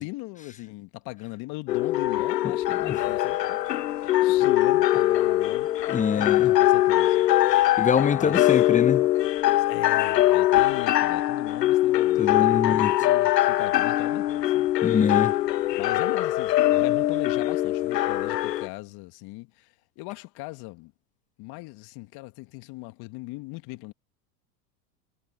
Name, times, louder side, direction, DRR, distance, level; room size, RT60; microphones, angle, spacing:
voice 1, 0.0-5.7 6.1-7.3 8.2-8.6 9.6-14.7 15.7-20.9 21.4-23.9, left 23 dB, 50° left, 2.2 m, -39 dB
sound 1, 1.7-18.7, left 14 dB, 80° left, 1.0 m, -22 dB
voice 2, 5.9-6.5 7.8-9.1 12.2-12.9 14.8-15.3, left 7 dB, 15° left, 0.8 m, -24 dB
hypercardioid pair, 90°, 48 cm